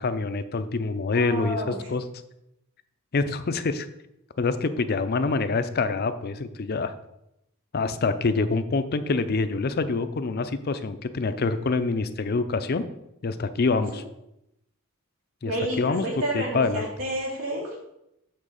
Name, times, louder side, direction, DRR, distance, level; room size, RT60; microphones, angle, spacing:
voice 1, 0.0-2.0 3.1-3.9 4.4-6.9 7.7-12.8 13.2-14.0 15.4-15.5 15.8-16.0 16.3-16.9, left 4 dB, 50° left, 11 dB, 0.5 m, -26 dB
voice 2, 1.1-1.8 13.9-14.0 15.4-17.9, right 1 dB, 90° right, -4 dB, 3.1 m, -30 dB
7.5 x 3.9 x 6.5 m, 0.84 s
head